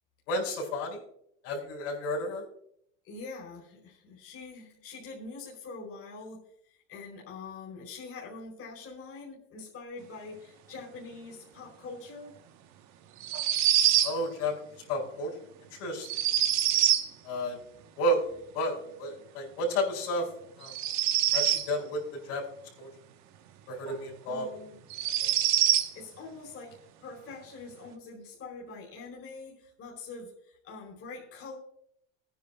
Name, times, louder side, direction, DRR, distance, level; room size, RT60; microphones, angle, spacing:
voice 1, 0.3-1.0 1.4-2.4 14.0-14.6 14.9-15.3 15.7-16.2 17.2-17.6 18.0-18.3 18.5-20.3 20.6-20.7 21.3-22.4 22.8-22.9 23.7-24.5 25.2-25.3, equal, 65° left, -3 dB, 5.6 m, -31 dB
voice 2, 3.0-6.4 6.9-12.3 24.3-24.8 25.9-31.6, left 3 dB, 40° left, -4 dB, 4.7 m, -44 dB
sound 1, 13.2-14.2 16.0-17.1 20.6-21.7 23.9-24.0 24.9-25.9, right 12 dB, 50° right, 1.2 m, -25 dB
22.5 x 10.0 x 2.3 m, 0.71 s
supercardioid pair, 105°, 36 cm